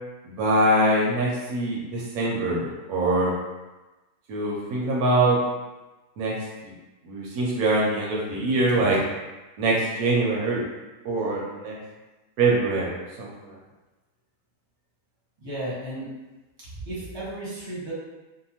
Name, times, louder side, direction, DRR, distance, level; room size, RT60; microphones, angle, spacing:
voice 1, 0.2-3.3 4.3-5.4 6.2-6.3 6.6-6.7 7.0-9.0 9.6-10.6 11.0-11.8 12.4-13.5, right 2 dB, 75° right, -3 dB, 1.0 m, -23 dB
voice 2, 15.4-16.1 16.9-17.9, right 1 dB, 25° right, -8 dB, 0.8 m, -33 dB
2.7 x 2.2 x 2.8 m, 1.1 s
omnidirectional pair, 1.6 m